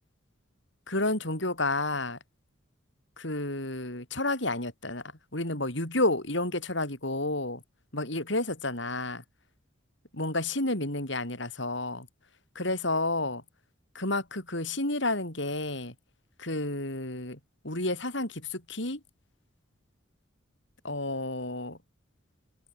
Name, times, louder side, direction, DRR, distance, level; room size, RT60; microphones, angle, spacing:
voice 1, 0.9-2.2 3.2-5.0 5.3-7.6 7.9-9.2 10.1-12.1 12.5-13.4 13.9-15.9 16.4-17.4 17.6-19.0 20.8-21.8, left 2 dB, 65° left, 6.6 m, -30 dB
open air
head